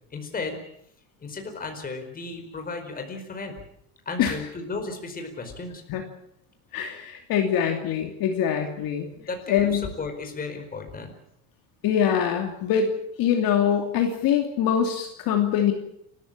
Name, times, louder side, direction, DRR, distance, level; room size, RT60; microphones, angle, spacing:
voice 1, 0.1-0.6 1.2-3.5 4.0-5.8 9.1-11.1, left 3 dB, 20° left, 5 dB, 4.8 m, -34 dB
voice 2, 6.7-9.1 9.5-9.8 11.8-12.9 13.2-15.7, left 8 dB, 50° left, 3 dB, 2.9 m, -23 dB
29.5 x 14.0 x 8.7 m, 0.74 s
cardioid pair, 155°, 45 cm